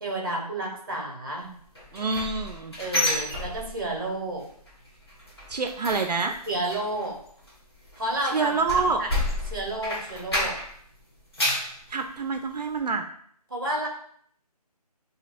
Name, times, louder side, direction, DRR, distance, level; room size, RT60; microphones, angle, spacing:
voice 1, 0.0-1.5 2.8-4.4 6.5-7.2 8.0-9.2 9.5-10.6 13.5-13.9, right 1 dB, 35° right, -1 dB, 0.9 m, -31 dB
sound 1, 1.7-4.1 4.4-4.7 5.0-10.8 11.1-11.7 12.2-12.3 12.8-12.9, left 1 dB, 40° left, 1.0 m, -30 dB
voice 2, 1.9-2.8 5.5-6.4 8.2-9.0 11.9-13.1, right 4 dB, 80° right, 5 dB, 0.5 m, -27 dB
5.8 x 2.8 x 2.4 m, 0.64 s
figure-of-eight pair, 180°, 20 cm